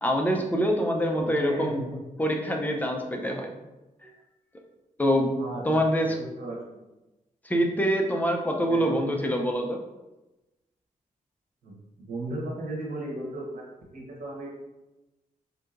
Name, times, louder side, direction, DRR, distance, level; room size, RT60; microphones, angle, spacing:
voice 1, 0.0-1.9 2.2-3.5 4.0-4.1 5.0-5.3 5.6-6.2 7.4-9.8, equal, 10° left, 2 dB, 0.5 m, -25 dB
voice 2, 1.3-2.0 5.4-6.8 8.7-9.0 11.6-11.8 12.1-13.6 13.9-14.5, right 1 dB, 85° right, -3 dB, 1.1 m, -36 dB
3.7 x 2.8 x 2.5 m, 1.0 s
cardioid pair, 85°, 14 cm